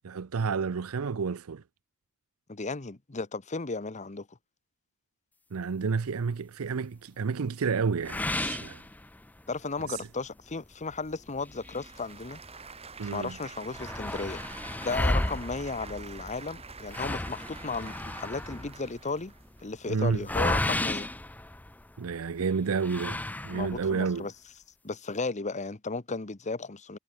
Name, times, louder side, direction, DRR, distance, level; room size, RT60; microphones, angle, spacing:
voice 1, 0.0-1.6 5.5-8.8 9.8-10.1 13.0-13.4 19.9-20.2 22.0-23.2 23.4-24.3, right 5 dB, 85° right, 0.6 m, -30 dB
voice 2, 2.5-4.3 9.5-12.4 13.0-14.4 14.8-19.3 19.6-21.1 23.5-24.3 24.8-27.0, left 3 dB, 35° left, 1.1 m, -35 dB
sound 1, 8.0-9.5 10.0-10.1 10.5-10.6 11.4-12.7 13.1-13.2 13.4-22.1 22.8-23.9, left 1 dB, 10° left, 0.5 m, -33 dB
Applause / Crowd, 10.9-19.7, right 5 dB, 30° right, 3.1 m, -47 dB
head